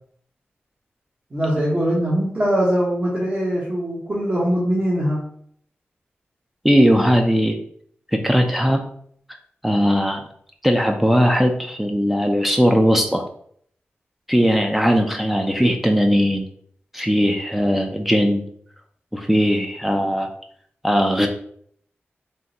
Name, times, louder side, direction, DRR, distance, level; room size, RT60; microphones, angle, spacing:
voice 1, 1.3-5.2, equal, 30° right, -6 dB, 1.0 m, -21 dB
voice 2, 6.6-7.6 8.1-8.8 9.6-10.2 10.6-13.2 14.3-16.5 16.9-18.4 19.1-20.3 20.8-21.3, equal, 5° right, 3 dB, 0.4 m, -18 dB
3.6 x 2.6 x 4.0 m, 0.62 s
wide cardioid pair, 110°, 4 cm